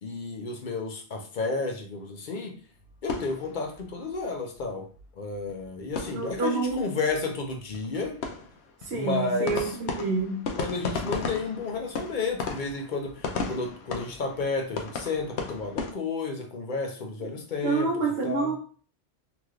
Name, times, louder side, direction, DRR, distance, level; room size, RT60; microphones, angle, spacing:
voice 1, 0.0-2.5 3.0-4.9 5.2-8.2 8.9-9.8 10.5-18.5, left 4 dB, 55° left, 3 dB, 0.7 m, -32 dB
sound 1, 2.8-4.2 4.5-4.6 4.9-5.0 5.3-6.8 7.0-7.2 7.4-15.9, left 4 dB, 85° left, 0.9 m, -36 dB
voice 2, 6.1-6.9 8.9-10.4 17.6-18.6, right 4 dB, 70° right, -2 dB, 1.0 m, -28 dB
3.1 x 2.9 x 2.3 m, 0.40 s
omnidirectional pair, 1.1 m